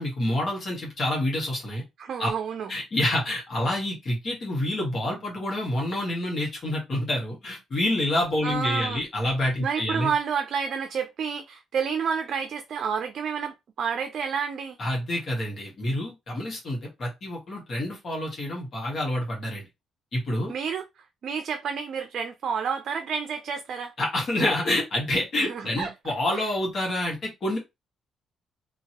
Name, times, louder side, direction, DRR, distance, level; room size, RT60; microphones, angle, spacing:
voice 1, 0.0-1.8 2.2-2.3 2.7-10.1 14.8-19.7 20.1-20.5 24.0-27.6, left 1 dB, 50° left, 1.5 m, -27 dB
voice 2, 2.0-2.7 8.4-9.0 9.6-14.8 20.5-20.8 21.2-23.9 25.4-26.5, right 6 dB, 60° right, 0.4 m, -30 dB
2.8 x 2.8 x 2.9 m
cardioid pair, 90°, 0 cm